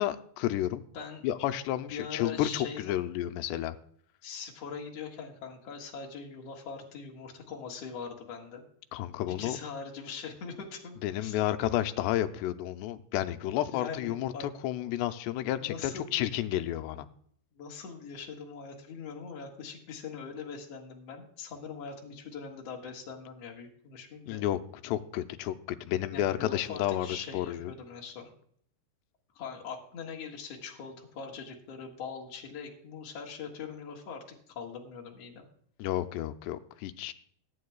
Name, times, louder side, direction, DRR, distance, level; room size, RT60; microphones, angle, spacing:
voice 1, 0.0-0.8 1.2-3.8 8.9-9.6 11.0-14.3 14.6-17.1 24.3-25.5 25.8-27.7 35.8-37.1, left 13 dB, 85° left, 9 dB, 2.8 m, -31 dB
voice 2, 1.8-3.0 4.2-8.6 9.3-11.7 13.7-14.5 15.6-16.1 17.5-24.4 26.1-28.3 29.3-35.4, left 6 dB, 50° left, 0 dB, 2.2 m, -42 dB
21.5 x 9.5 x 2.3 m, 0.64 s
omnidirectional pair, 4.8 m